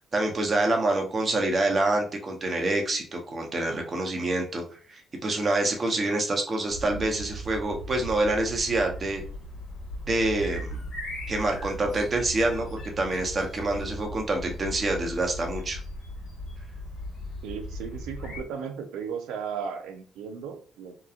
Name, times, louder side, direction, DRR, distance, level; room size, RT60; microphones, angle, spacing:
voice 1, 0.0-9.2 10.1-10.8 11.3-15.8, right 2 dB, 40° right, 2 dB, 0.8 m, -27 dB
sound 1, 6.7-18.4, equal, 70° left, 1.1 m, -38 dB
voice 2, 17.4-21.0, right 6 dB, 90° right, 6 dB, 0.4 m, -36 dB
2.9 x 2.3 x 2.4 m, 0.42 s
supercardioid pair, 70°, 0 cm